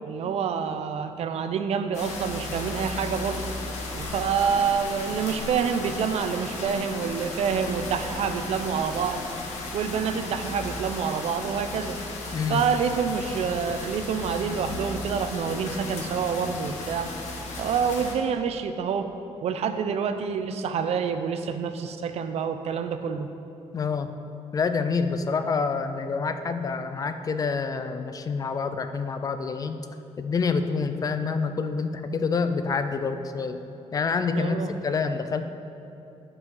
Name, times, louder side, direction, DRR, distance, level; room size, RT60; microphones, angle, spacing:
voice 1, 0.1-3.5 3.9-9.2 9.7-12.0 12.5-17.1 17.6-19.1 19.4-23.3 34.3-34.7, right 6 dB, 65° right, 8 dB, 0.6 m, -27 dB
sound 1, 1.9-18.2, left 2 dB, 85° left, 1.4 m, -35 dB
voice 2, 12.3-12.7 23.7-24.1 24.5-29.9 30.2-33.6 33.9-34.6 34.8-35.5, left 5 dB, 30° left, 9 dB, 0.4 m, -27 dB
10.5 x 5.5 x 5.5 m, 2.8 s
cardioid pair, 150°, 12 cm